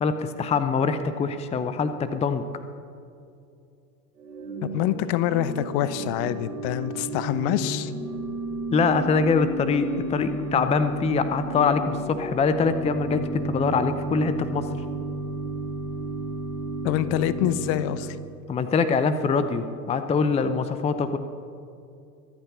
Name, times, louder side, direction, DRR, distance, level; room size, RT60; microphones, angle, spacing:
voice 1, 0.0-2.4 8.7-14.7 18.5-21.2, left 5 dB, 15° left, 11 dB, 0.6 m, -24 dB
Organ / Church bell, 4.2-18.3, right 2 dB, 85° right, 2.6 m, -33 dB
voice 2, 4.7-7.9 16.8-18.2, left 12 dB, 45° left, 14 dB, 0.9 m, -26 dB
24.0 x 8.8 x 5.6 m, 2.5 s
figure-of-eight pair, 85°, 47 cm